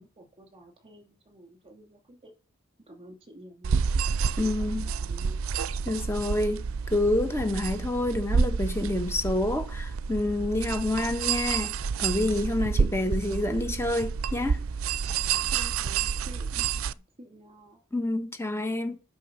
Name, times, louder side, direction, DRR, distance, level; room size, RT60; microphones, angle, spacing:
voice 1, 0.0-2.3 2.9-3.9 4.4-5.4 15.5-16.9 17.2-17.8, right 1 dB, 30° right, 2.8 m, -50 dB
sound 1, 3.6-16.9, right 6 dB, 80° right, 0.4 m, -29 dB
voice 2, 4.4-4.9 5.8-14.6 17.9-19.0, left 2 dB, 10° left, 1.2 m, -28 dB
8.3 x 6.1 x 7.0 m
head